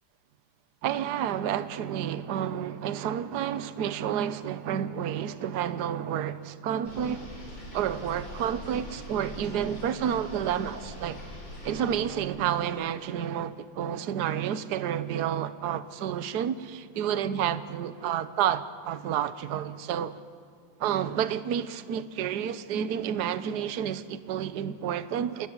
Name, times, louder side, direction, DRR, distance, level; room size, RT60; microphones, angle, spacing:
voice 1, 0.8-7.3 7.7-11.2 11.6-20.2 20.8-25.5, right 9 dB, 55° right, 1.3 m, -30 dB
sound 1, 6.8-12.0, equal, 55° left, 6.7 m, -42 dB
26.5 x 21.0 x 9.8 m
omnidirectional pair, 2.4 m